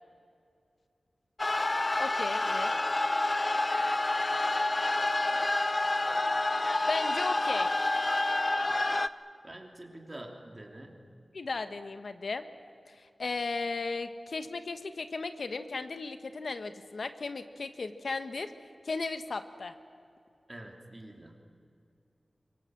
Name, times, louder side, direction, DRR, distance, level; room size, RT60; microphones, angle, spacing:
sound 1, 1.4-9.1, left 2 dB, 35° left, 0.7 m, -28 dB
voice 1, 2.0-2.7 6.9-7.7 11.3-12.4 12.9-18.5 18.8-19.7, left 3 dB, 75° left, 9 dB, 1.2 m, -35 dB
voice 2, 9.4-11.0 20.5-21.4, right 1 dB, 30° right, 3 dB, 3.0 m, -46 dB
25.0 x 23.0 x 7.7 m, 2.5 s
wide cardioid pair, 95°, 0 cm